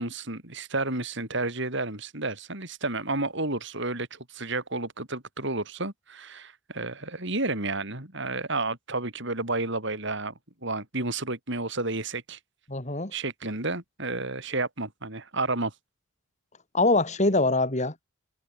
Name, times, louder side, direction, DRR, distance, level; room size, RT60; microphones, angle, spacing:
voice 1, 0.0-10.3 10.6-12.4 13.1-15.7, right 2 dB, 60° right, 5.5 m, -31 dB
voice 2, 12.7-13.1 16.7-18.0, left 2 dB, 35° left, 2.9 m, -23 dB
head